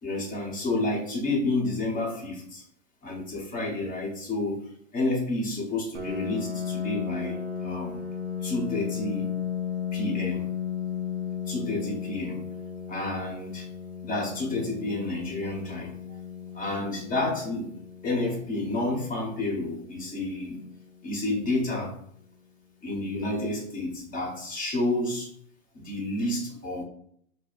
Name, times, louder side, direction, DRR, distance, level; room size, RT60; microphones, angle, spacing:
voice 1, 0.0-2.6 3.0-4.6 4.9-8.0 8.4-9.3 9.9-10.5 11.5-12.4 12.9-13.7 14.0-16.2 16.5-17.7 18.0-20.6 21.0-22.0 22.8-25.3 25.7-26.8, left 2 dB, 20° left, -2 dB, 1.1 m, -30 dB
Piano, 5.9-21.4, left 7 dB, 25° right, 0.5 m, -35 dB
4.9 x 2.2 x 2.4 m, 0.65 s
hypercardioid pair, 135°, 42 cm